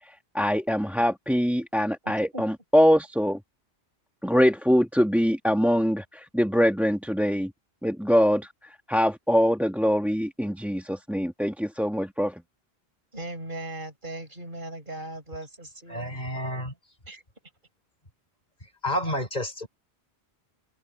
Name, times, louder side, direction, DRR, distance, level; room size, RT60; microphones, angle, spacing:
voice 1, 0.0-3.4 4.2-7.5 7.8-12.4, equal, ahead, 1.3 m, -23 dB
voice 2, 2.0-2.4 13.1-16.2 17.1-17.2, right 1 dB, 50° right, 6.3 m, -38 dB
voice 3, 15.9-16.7 18.8-19.7, equal, 40° left, 5.3 m, -30 dB
omnidirectional pair, 1.1 m